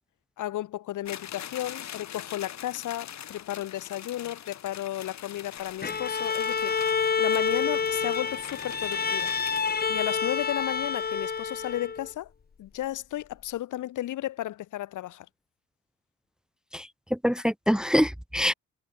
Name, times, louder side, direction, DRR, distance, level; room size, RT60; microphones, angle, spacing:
voice 1, 0.4-9.3 9.9-12.3 12.6-15.3, left 14 dB, 80° left, 3.6 m, -34 dB
sound 1, 1.1-9.6, left 10 dB, 65° left, 5.0 m, -43 dB
Bowed string instrument, 5.8-12.1, left 5 dB, 30° left, 1.4 m, -28 dB
voice 2, 16.7-18.5, equal, ahead, 1.1 m, -25 dB
cardioid pair, 90°, 30 cm